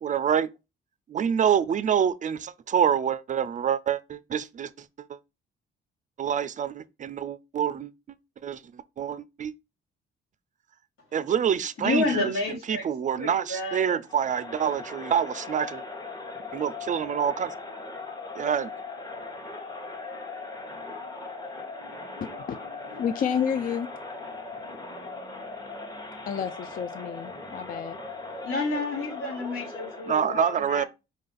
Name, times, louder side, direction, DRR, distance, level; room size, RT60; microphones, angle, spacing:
voice 1, 0.0-0.5 1.1-5.2 6.2-7.9 8.4-9.5 11.1-12.3 12.7-15.8 16.5-17.5 18.4-18.7 30.1-30.8, right 8 dB, 40° right, 0.4 m, -26 dB
voice 2, 11.8-12.8 13.2-14.0 28.4-30.9, left 3 dB, 80° left, 1.8 m, -30 dB
Crowd, 14.1-30.2, left 3 dB, 20° left, 1.0 m, -39 dB
voice 3, 22.9-23.9 26.3-28.0, left 7 dB, 45° left, 0.4 m, -29 dB
5.0 x 2.5 x 3.9 m
cardioid pair, 90°, 20 cm